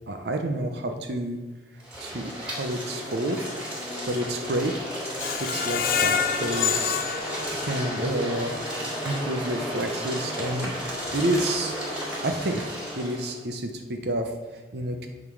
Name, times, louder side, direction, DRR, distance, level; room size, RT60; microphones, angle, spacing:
voice 1, 0.1-1.4 2.0-4.8 5.4-7.0 7.6-8.5 9.0-10.7 11.1-11.7 12.0-15.1, right 1 dB, 60° right, 5 dB, 0.7 m, -29 dB
sound 1, 1.8-13.4, equal, 5° right, 3.0 m, -33 dB
Screech, 5.2-8.2 8.6-8.7 9.1-9.2, left 8 dB, 50° left, 0.5 m, -27 dB
9.4 x 4.0 x 6.0 m, 1.2 s
head